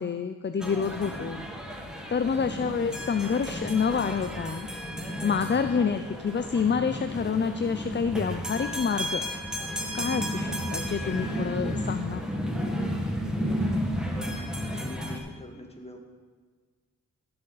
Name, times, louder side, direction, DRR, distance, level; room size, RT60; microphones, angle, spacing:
voice 1, 0.0-1.4 2.1-4.7 5.2-9.2 9.9-12.5, left 6 dB, 35° left, 9 dB, 0.5 m, -28 dB
sound 1, 0.6-15.2, equal, ahead, 1.6 m, -32 dB
voice 2, 1.0-1.4 2.2-2.5 5.4-5.7 14.1-16.0, left 1 dB, 20° left, 2 dB, 1.9 m, -45 dB
14.5 x 7.0 x 4.0 m, 1.5 s
cardioid pair, 60°, 33 cm